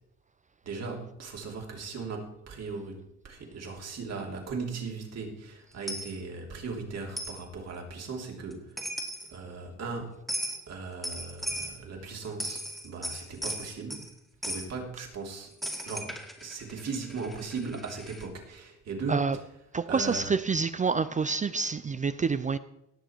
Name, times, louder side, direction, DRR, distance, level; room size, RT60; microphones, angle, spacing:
voice 1, 0.6-8.8 9.3-10.1 10.7-14.1 14.4-15.5 15.8-19.4 19.8-20.3, right 4 dB, 60° right, 3.0 m, -38 dB
Coin (dropping), 5.9-6.1 7.2-7.4 8.5-8.6 8.8-9.3 10.3-10.6 11.0-11.8 12.2-14.1 14.4-14.7 15.6-18.3, equal, ahead, 2.1 m, -36 dB
voice 2, 19.7-22.6, right 5 dB, 25° right, 0.4 m, -27 dB
17.5 x 6.7 x 4.6 m
cardioid pair, 90°, 30 cm